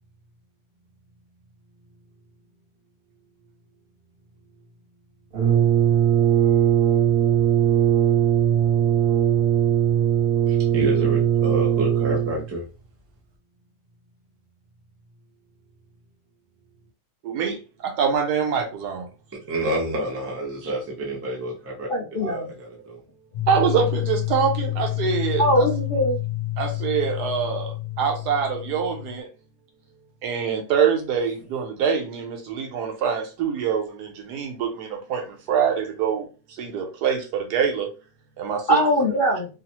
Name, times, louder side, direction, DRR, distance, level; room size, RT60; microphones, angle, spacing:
Brass instrument, 5.3-12.5, right 9 dB, 55° right, 0.7 m, -19 dB
voice 1, 10.5-12.7 19.3-23.0, right 1 dB, 20° right, 0.3 m, -29 dB
voice 2, 17.2-19.1 23.5-25.7 26.6-29.3 30.2-37.9 38.4-38.8, right 7 dB, 80° right, 1.3 m, -25 dB
voice 3, 21.9-22.5 25.4-26.2 38.7-39.5, equal, 60° left, 0.6 m, -21 dB
sound 1, 23.3-29.2, left 17 dB, 85° left, 1.2 m, -29 dB
3.1 x 2.0 x 2.9 m
omnidirectional pair, 1.7 m